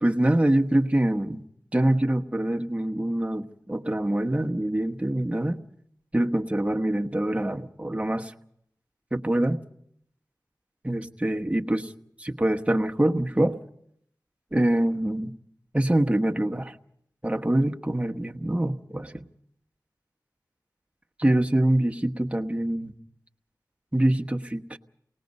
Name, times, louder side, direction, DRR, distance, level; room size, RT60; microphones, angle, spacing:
voice 1, 0.0-1.4 1.7-5.6 6.1-8.3 9.1-9.6 10.8-11.9 12.2-13.6 14.5-15.3 15.7-16.8 17.2-19.3 21.2-22.9 23.9-24.8, right 1 dB, 15° right, 4 dB, 1.2 m, -25 dB
29.0 x 19.5 x 5.4 m, 0.73 s
wide cardioid pair, 45°, 7 cm